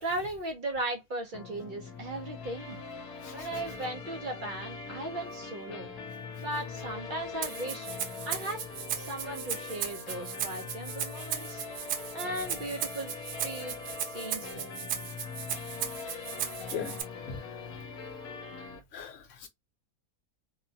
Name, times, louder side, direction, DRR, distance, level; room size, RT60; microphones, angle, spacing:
voice 1, 0.0-2.8 3.3-5.9 6.4-7.9 8.3-8.6 8.9-11.6 12.1-13.8 14.0-14.7, right 1 dB, 55° right, 0.5 m, -37 dB
sound 1, 1.3-18.8, left 5 dB, 80° left, 1.1 m, -42 dB
Rattle (instrument), 7.4-17.0, right 9 dB, 85° right, 1.1 m, -36 dB
voice 2, 18.9-19.5, left 6 dB, 60° left, 1.0 m, -39 dB
2.9 x 2.1 x 2.6 m
omnidirectional pair, 1.6 m